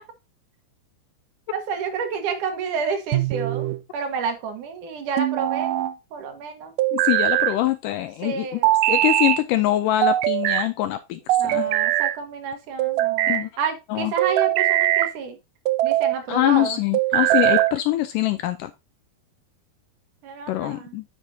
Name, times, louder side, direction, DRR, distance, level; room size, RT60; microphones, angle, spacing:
voice 1, 1.5-5.9 6.1-6.7 8.2-8.7 11.4-15.4 15.8-16.8 20.2-20.9, right 5 dB, 65° right, 2.7 m, -30 dB
sound 1, 3.1-3.8 5.2-5.9 6.8-7.6 8.6-9.4 10.0-10.7 11.3-12.2 12.8-13.4 14.2-15.1 15.7-16.2 16.9-17.8, right 14 dB, 80° right, 2.0 m, -21 dB
voice 2, 6.9-8.6 8.9-11.7 13.3-13.5 13.9-14.1 16.3-18.7 20.5-21.0, left 15 dB, 80° left, 1.9 m, -24 dB
9.7 x 6.8 x 2.7 m
omnidirectional pair, 4.2 m